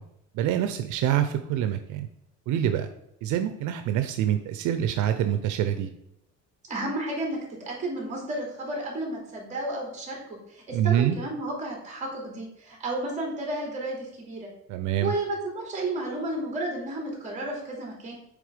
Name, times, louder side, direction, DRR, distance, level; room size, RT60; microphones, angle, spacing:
voice 1, 0.3-2.1 2.5-2.9 3.2-5.9 10.7-11.2 14.7-15.1, right 10 dB, 80° right, 8 dB, 0.7 m, -25 dB
voice 2, 6.7-14.5 15.0-18.2, right 1 dB, 25° right, -1 dB, 2.7 m, -32 dB
8.4 x 3.7 x 5.1 m, 0.82 s
cardioid pair, 170°, 30 cm